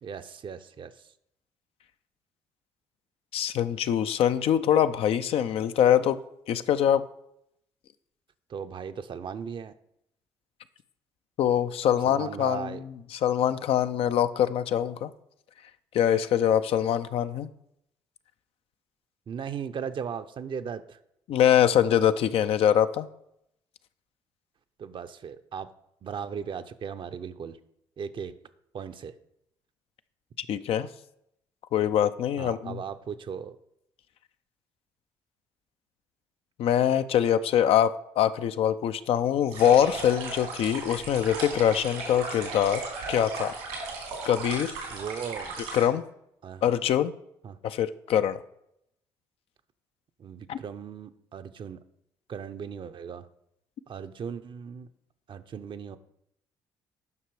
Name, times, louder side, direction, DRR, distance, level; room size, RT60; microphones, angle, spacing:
voice 1, 0.0-1.1 8.5-9.7 12.0-12.8 19.3-21.0 24.8-25.7 26.0-27.6 28.0-28.3 28.7-29.1 32.4-33.6 44.9-45.6 46.4-46.6 47.4-47.6 50.2-51.8 52.3-53.3 53.9-54.9 55.3-56.0, right 7 dB, 50° right, 10 dB, 0.7 m, -37 dB
voice 2, 3.3-6.2 6.5-7.0 11.4-12.8 13.1-15.1 15.9-17.5 21.3-23.1 30.5-30.9 31.7-32.8 36.6-42.8 43.1-43.6 44.2-44.8 45.7-46.0 46.6-47.1 47.6-48.4 50.5-50.6, left 10 dB, 65° left, 11 dB, 0.5 m, -24 dB
sound 1, 39.5-45.8, right 3 dB, 90° right, 3.1 m, -36 dB
9.6 x 5.9 x 4.8 m, 0.77 s
hypercardioid pair, 55°, 11 cm